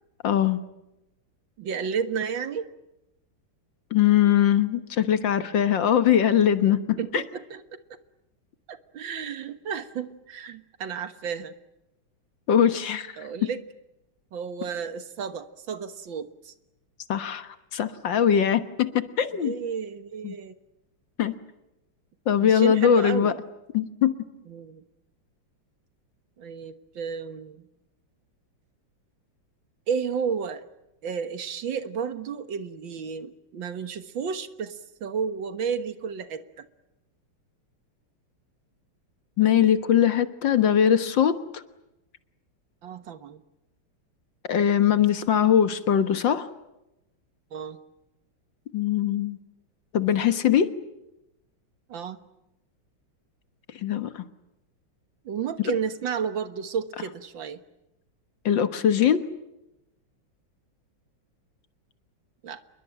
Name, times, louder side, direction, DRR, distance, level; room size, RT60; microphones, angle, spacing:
voice 1, 0.2-0.6 3.9-7.2 12.5-13.2 17.1-19.5 20.2-20.4 21.2-21.4 22.3-23.3 23.7-24.1 39.4-41.6 44.5-46.5 48.7-49.4 49.9-50.7 53.8-54.3 58.5-59.3, left 9 dB, 65° left, 11 dB, 2.0 m, -21 dB
voice 2, 1.6-2.7 7.0-8.0 8.7-11.6 13.2-13.6 14.3-16.5 19.3-20.6 22.4-23.4 24.5-24.8 26.4-27.7 29.9-30.7 31.0-36.7 42.8-43.4 47.5-47.8 51.9-52.2 55.3-57.6 62.4-62.6, right 6 dB, 70° right, 11 dB, 2.0 m, -32 dB
28.0 x 22.0 x 9.0 m, 0.92 s
omnidirectional pair, 2.2 m